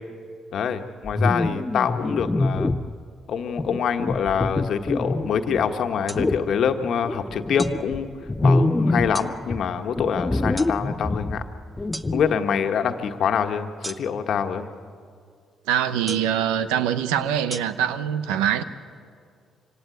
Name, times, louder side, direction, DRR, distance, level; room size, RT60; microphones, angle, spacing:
voice 1, 0.5-2.7 3.3-8.1 8.4-11.4 12.1-14.7, left 7 dB, 65° left, 1.4 m, -25 dB
sound 1, 1.0-3.0 3.6-5.6 6.2-6.5 7.0-9.2 9.5-12.3, left 2 dB, 25° left, 0.8 m, -25 dB
sound 2, 6.1-6.2 7.6-7.8 9.1-9.3 10.6-10.7 11.9-12.1 13.8-14.3 16.1-16.4 17.5-17.6, right 1 dB, 15° right, 0.8 m, -34 dB
voice 2, 15.7-18.6, right 9 dB, 85° right, 0.9 m, -23 dB
24.5 x 17.0 x 9.3 m
hypercardioid pair, 55°, 0 cm